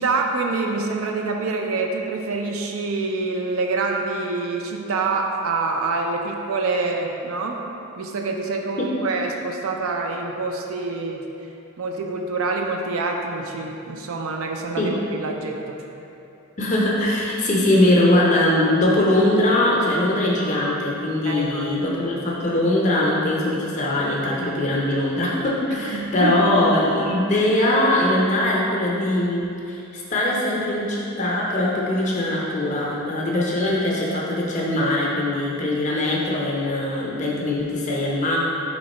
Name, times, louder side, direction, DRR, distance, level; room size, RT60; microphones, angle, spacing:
voice 1, 0.0-7.6 8.0-11.2 11.8-15.8 21.2-21.9 25.7-26.4, right 3 dB, 70° right, 2 dB, 0.4 m, -26 dB
voice 2, 16.6-38.4, left 1 dB, 35° left, -4 dB, 0.5 m, -21 dB
3.5 x 3.0 x 4.1 m, 2.8 s
head